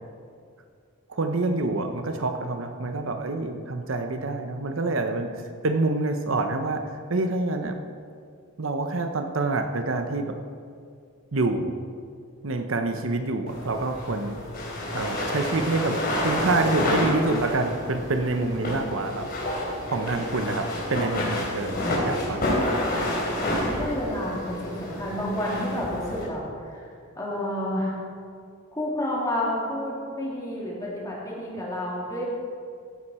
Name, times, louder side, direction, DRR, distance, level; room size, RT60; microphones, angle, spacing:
voice 1, 1.1-6.8 7.1-7.8 8.6-10.3 11.3-11.8 12.4-14.4 14.9-16.0 16.2-19.3 19.9-21.8 22.0-22.6 31.5-31.6, right 2 dB, 65° right, 6 dB, 0.8 m, -27 dB
sound 1, 13.5-26.2, left 1 dB, 45° left, 3.6 m, -29 dB
voice 2, 22.9-23.4 23.7-26.4 26.7-26.8 27.1-28.0 28.7-32.3, left 1 dB, 15° left, -5 dB, 2.7 m, -30 dB
15.5 x 9.3 x 4.3 m, 2.3 s
head